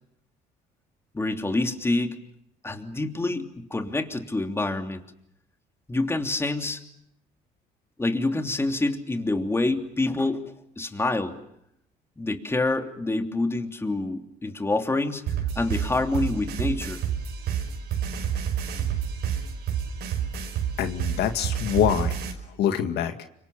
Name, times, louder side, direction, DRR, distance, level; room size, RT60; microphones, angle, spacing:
voice 1, 1.1-2.1 2.6-5.0 5.9-6.8 8.0-10.4 10.8-11.4 12.2-15.2 15.5-17.0, left 2 dB, 15° left, 5 dB, 3.1 m, -27 dB
sound 1, 15.3-22.3, right 8 dB, 80° right, 5.2 m, -29 dB
voice 2, 20.8-22.2 22.6-23.1, left 9 dB, 75° left, 8 dB, 2.1 m, -24 dB
30.0 x 26.0 x 7.0 m, 0.76 s
cardioid pair, 110°, 17 cm